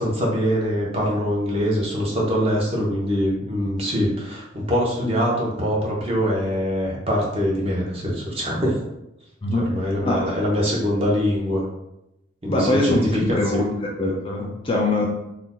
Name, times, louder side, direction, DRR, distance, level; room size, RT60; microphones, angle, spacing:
voice 1, 0.0-8.8 9.6-11.6 12.4-13.7, equal, 30° right, -3 dB, 0.7 m, -23 dB
voice 2, 10.0-10.4 12.5-15.1, left 2 dB, 25° left, -1 dB, 0.4 m, -23 dB
2.5 x 2.2 x 3.7 m, 0.88 s
head